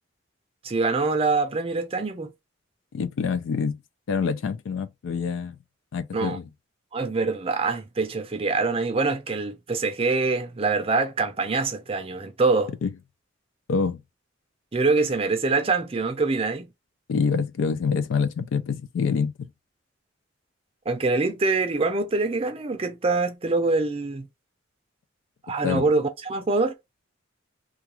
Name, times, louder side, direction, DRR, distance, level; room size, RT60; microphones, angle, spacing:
voice 1, 0.6-2.3 6.1-6.4 6.9-12.7 14.7-16.7 20.9-24.3 25.4-26.7, right 3 dB, 30° right, 0.5 m, -24 dB
voice 2, 2.9-3.8 4.1-5.6 5.9-6.4 12.8-12.9 13.7-14.0 17.1-19.5 25.6-25.9, left 5 dB, 75° left, 0.3 m, -26 dB
2.3 x 2.3 x 2.9 m
head